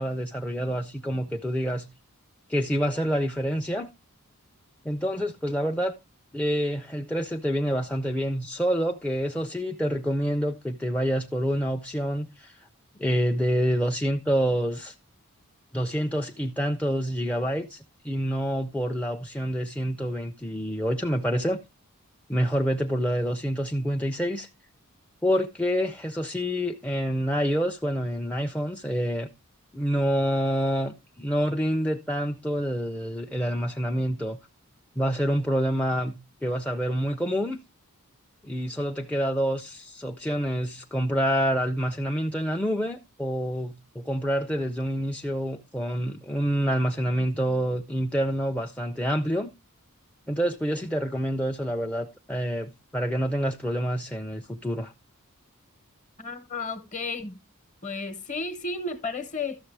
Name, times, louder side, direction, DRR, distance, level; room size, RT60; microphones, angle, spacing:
voice 1, 0.0-1.9 2.5-3.9 4.9-5.9 6.3-12.6 13.0-14.9 15.7-21.6 22.3-24.5 25.2-29.3 29.7-34.4 35.0-36.2 36.4-37.6 38.4-49.5 50.3-54.9, equal, 5° left, 0.4 m, -27 dB
voice 2, 56.2-57.4 57.8-59.6, left 3 dB, 35° left, 0.9 m, -33 dB
12.5 x 6.6 x 3.3 m
head